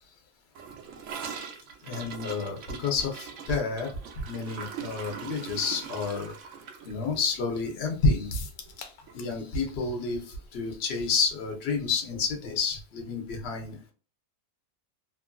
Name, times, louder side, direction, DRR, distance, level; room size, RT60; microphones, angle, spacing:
Gurgling / Toilet flush, 0.5-8.8 9.1-9.2 9.5-9.9 10.2-10.3 10.6-10.7 11.7-11.8, right 6 dB, 65° right, 0.7 m, -42 dB
voice 1, 1.8-3.9 4.3-6.3 6.9-8.4 9.1-13.9, left 4 dB, 50° left, 2 dB, 0.9 m, -29 dB
sound 1, 8.3-9.4 9.7-9.8 10.1-10.2, left 6 dB, 75° left, 1.0 m, -43 dB
3.1 x 2.4 x 2.2 m, 0.37 s
omnidirectional pair, 1.7 m